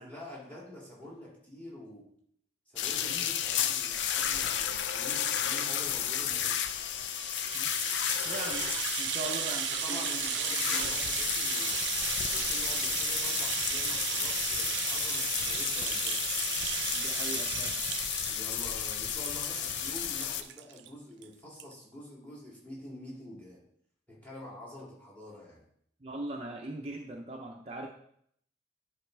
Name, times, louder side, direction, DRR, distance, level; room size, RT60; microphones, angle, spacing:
voice 1, 0.0-2.1 2.7-6.6 9.2-11.8 12.3-16.3 18.3-23.6 24.1-25.6, left 1 dB, 10° left, -4 dB, 2.3 m, -47 dB
sound 1, 2.8-20.4, left 9 dB, 80° left, 0.5 m, -32 dB
Rattle (instrument), 6.8-20.9 21.2-21.3 21.6-21.7, right 13 dB, 75° right, 0.3 m, -35 dB
voice 2, 8.2-10.2 10.6-10.9 16.9-17.8 26.0-27.9, right 2 dB, 35° right, 1 dB, 0.6 m, -41 dB
10.5 x 5.0 x 3.3 m, 0.68 s
head